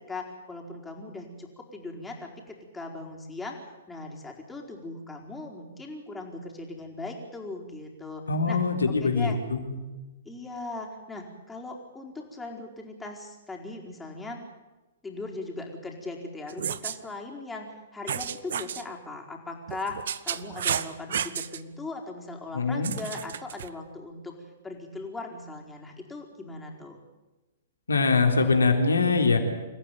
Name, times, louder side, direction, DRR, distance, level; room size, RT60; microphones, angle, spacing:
voice 1, 0.1-3.6 3.9-8.6 8.9-9.4 10.2-14.4 15.0-24.4 24.6-27.0, left 2 dB, 10° left, 0 dB, 4.7 m, -39 dB
voice 2, 8.3-9.8 22.5-22.9 27.9-29.4, left 4 dB, 85° left, 4 dB, 3.8 m, -23 dB
sound 1, 16.5-17.0 18.1-18.8 19.7-21.6 22.8-23.7, right 9 dB, 65° right, 1.1 m, -32 dB
27.5 x 14.5 x 9.3 m, 1.1 s
hypercardioid pair, 120°, 0 cm